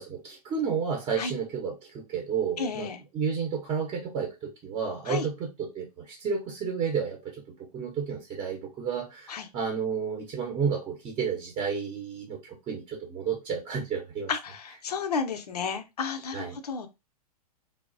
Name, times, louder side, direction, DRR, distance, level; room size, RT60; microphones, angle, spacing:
voice 1, 0.0-2.9 3.1-7.4 7.7-14.3 16.3-16.6, right 6 dB, 25° right, 0.7 m, -31 dB
voice 2, 2.6-3.0 5.1-5.3 9.3-9.5 14.3-16.9, left 5 dB, 75° left, 0.5 m, -32 dB
3.0 x 2.0 x 2.5 m
hypercardioid pair, 120°, 20 cm